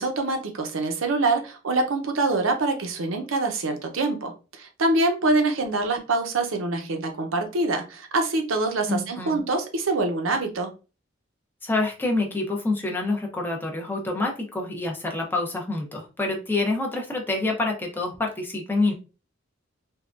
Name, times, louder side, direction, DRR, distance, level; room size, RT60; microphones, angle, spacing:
voice 1, 0.0-10.7, right 2 dB, 85° right, 5 dB, 0.7 m, -25 dB
voice 2, 8.9-9.4 11.6-18.9, left 2 dB, 10° left, 0 dB, 0.7 m, -27 dB
3.5 x 2.2 x 2.4 m, 0.32 s
head